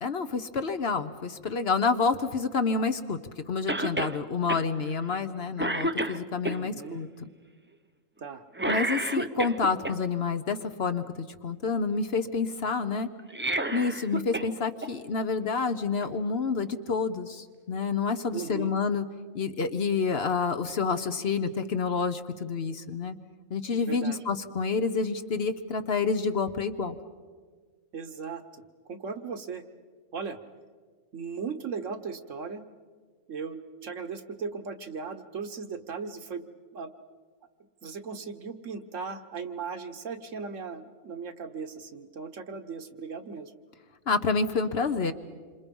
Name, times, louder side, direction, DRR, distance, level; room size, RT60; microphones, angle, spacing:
voice 1, 0.0-3.2 3.5-7.1 8.7-13.1 13.7-19.0 19.3-23.1 23.5-27.0 44.1-45.1, left 4 dB, 50° left, 9 dB, 1.0 m, -28 dB
Cough, 3.7-4.2 4.5-4.6 5.1-5.3 5.6-6.6 8.6-9.9 13.2-14.5 14.8-14.9 16.0-16.1, right 1 dB, 15° right, 0.4 m, -29 dB
voice 2, 6.5-7.0 8.2-8.4 18.3-18.8 23.9-24.2 27.9-28.6 28.9-29.6 30.1-30.4 31.1-32.6 33.3-36.4 36.7-36.9 37.8-43.5, right 5 dB, 65° right, 7 dB, 1.5 m, -37 dB
27.5 x 26.0 x 5.4 m, 1.6 s
omnidirectional pair, 1.4 m